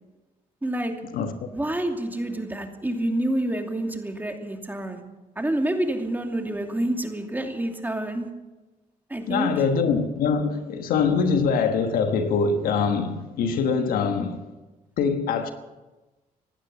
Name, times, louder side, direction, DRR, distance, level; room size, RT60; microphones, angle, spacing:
voice 1, 0.6-0.9 1.5-5.0 5.4-8.3 9.1-9.5, right 1 dB, 10° right, 2.7 m, -28 dB
voice 2, 9.3-14.4 15.0-15.5, left 5 dB, 85° left, 1.3 m, -23 dB
16.5 x 11.5 x 6.9 m
cardioid pair, 70°, 15 cm